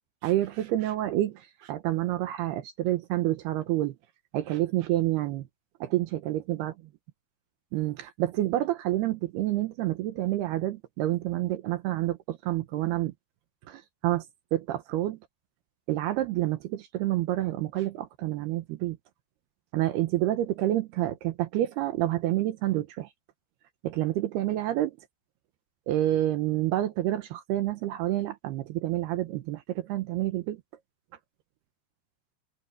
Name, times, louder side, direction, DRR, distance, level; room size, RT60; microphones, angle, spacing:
voice 1, 0.2-4.0 4.3-5.5 5.8-6.7 7.7-13.1 13.7-14.3 14.5-15.2 15.9-19.0 19.7-23.1 23.8-25.0 25.9-30.6, right 14 dB, 75° right, 2.5 m, -28 dB
omnidirectional pair, 5.5 m